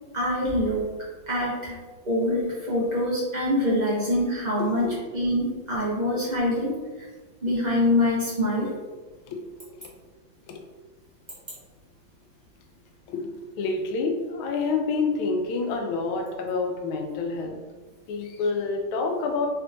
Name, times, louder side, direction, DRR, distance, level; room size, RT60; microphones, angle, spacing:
voice 1, 0.1-0.9 1.3-1.7 2.0-4.9 5.1-6.7 7.4-8.7, left 1 dB, 85° right, -8 dB, 0.3 m, -24 dB
voice 2, 4.6-5.0 9.3-9.4 9.7-9.9 10.5-10.6 13.1-13.3 13.6-17.6 18.1-19.5, left 4 dB, 80° left, 3 dB, 1.4 m, -28 dB
3.5 x 3.3 x 2.6 m, 1.3 s
omnidirectional pair, 2.2 m